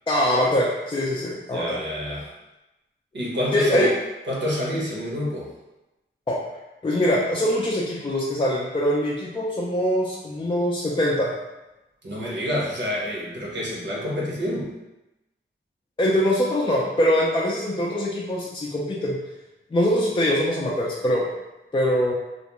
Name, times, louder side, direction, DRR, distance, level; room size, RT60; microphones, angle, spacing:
voice 1, 0.1-1.8 3.5-3.9 6.3-6.4 6.8-11.3 16.0-19.2 19.7-21.2 21.7-22.1, equal, 25° left, -4 dB, 0.4 m, -23 dB
voice 2, 1.5-2.3 3.1-3.9 4.3-5.5 12.0-14.7, equal, 60° right, -5 dB, 0.9 m, -27 dB
2.4 x 2.1 x 2.9 m, 1.0 s
wide cardioid pair, 60°, 21 cm